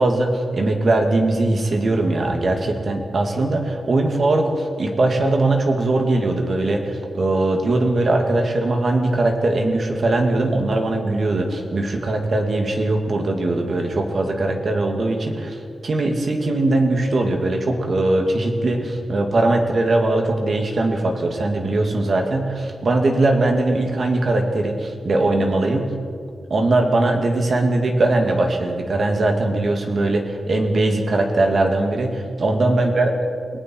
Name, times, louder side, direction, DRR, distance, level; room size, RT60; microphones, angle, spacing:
voice 1, 0.0-25.9 26.5-33.1, right 2 dB, 45° right, 2 dB, 2.7 m, -20 dB
28.5 x 19.0 x 4.8 m, 2.2 s
wide cardioid pair, 180°, 0 cm